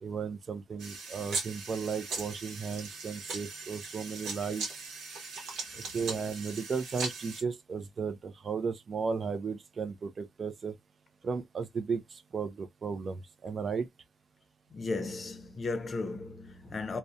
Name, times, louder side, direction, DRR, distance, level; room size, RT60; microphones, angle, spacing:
voice 1, 0.0-4.7 5.9-10.7 11.2-13.9, right 5 dB, 45° right, 0.4 m, -35 dB
sound 1, 0.8-7.4, right 4 dB, 80° right, 0.8 m, -39 dB
voice 2, 14.7-17.0, left 3 dB, 35° left, 0.6 m, -35 dB
2.3 x 2.1 x 2.6 m
cardioid pair, 90°, 0 cm